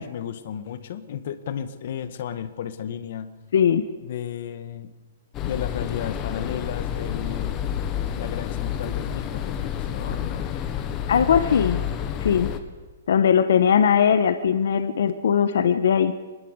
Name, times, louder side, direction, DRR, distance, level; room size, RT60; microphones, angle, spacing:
voice 1, 0.0-3.3 4.0-4.9 5.4-7.6 8.1-10.5, left 9 dB, 45° left, 10 dB, 1.8 m, -33 dB
voice 2, 3.5-3.8 11.1-11.8 12.2-12.5 13.1-16.1, left 7 dB, 65° left, 10 dB, 1.6 m, -19 dB
sound 1, 5.3-12.6, left 9 dB, 20° left, 1.5 m, -29 dB
25.0 x 21.0 x 8.3 m, 1.2 s
hypercardioid pair, 175°, 0 cm